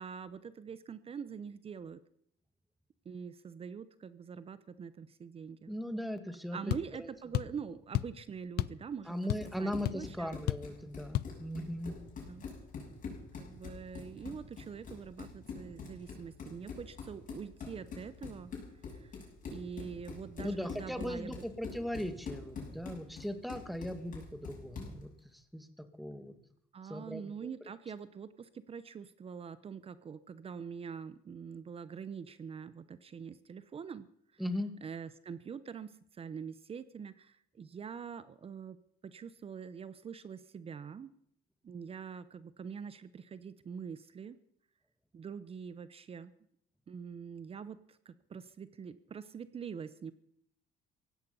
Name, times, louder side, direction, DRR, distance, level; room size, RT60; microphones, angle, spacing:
voice 1, 0.0-2.0 3.0-5.7 6.5-9.2 9.6-10.4 12.2-12.5 13.4-18.5 18.9-21.4 26.7-34.1 34.3-34.4 34.8-41.1 41.6-44.4 45.1-46.3 46.9-50.1, right 6 dB, 35° right, 15 dB, 0.8 m, -44 dB
voice 2, 5.7-7.1 9.1-12.0 20.4-25.7 26.0-26.3 26.9-27.5 34.4-34.7, equal, ahead, 7 dB, 1.7 m, -39 dB
sound 1, 6.7-6.9 7.3-7.6 7.9-8.2 8.6-8.8 9.1-9.6 9.9-10.0 10.5-10.7 11.1-11.3, left 16 dB, 70° left, 0.5 m, -32 dB
Run, 9.2-25.0, left 5 dB, 50° left, 6.8 m, -45 dB
16.5 x 15.5 x 5.4 m, 0.71 s
cardioid pair, 110°, 17 cm